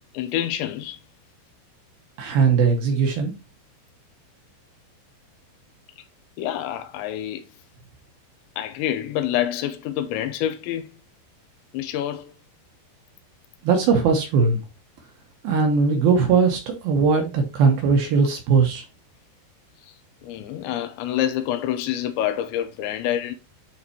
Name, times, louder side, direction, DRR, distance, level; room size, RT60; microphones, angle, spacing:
voice 1, 0.1-1.0 6.4-7.4 8.6-10.9 11.7-12.3 19.8-19.9 20.2-23.3, left 11 dB, 80° left, 2.9 m, -27 dB
voice 2, 2.2-3.3 13.6-14.6 15.4-18.8, right 5 dB, 70° right, 2.5 m, -19 dB
11.0 x 4.2 x 3.0 m
omnidirectional pair, 5.3 m